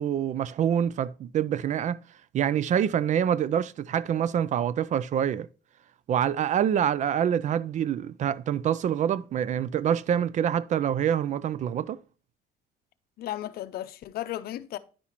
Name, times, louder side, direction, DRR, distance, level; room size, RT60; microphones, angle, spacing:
voice 1, 0.0-2.0 2.3-5.5 6.1-12.0, right 9 dB, 45° right, 0.4 m, -26 dB
voice 2, 13.2-14.8, left 13 dB, 65° left, 0.6 m, -34 dB
10.0 x 5.6 x 3.0 m
cardioid pair, 110°, 17 cm